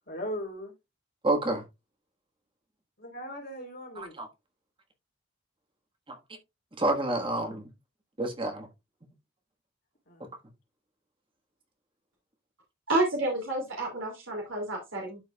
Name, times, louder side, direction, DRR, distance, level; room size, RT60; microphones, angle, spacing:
voice 1, 0.1-0.7 3.0-4.2 10.1-10.3, equal, 50° left, 3.8 m, -38 dB
voice 2, 1.2-1.6 4.0-4.3 6.1-6.2 6.8-7.7 8.2-8.7, right 2 dB, 25° right, 1.4 m, -28 dB
voice 3, 12.9-15.2, right 2 dB, 80° right, 2.6 m, -29 dB
12.5 x 4.7 x 2.3 m
head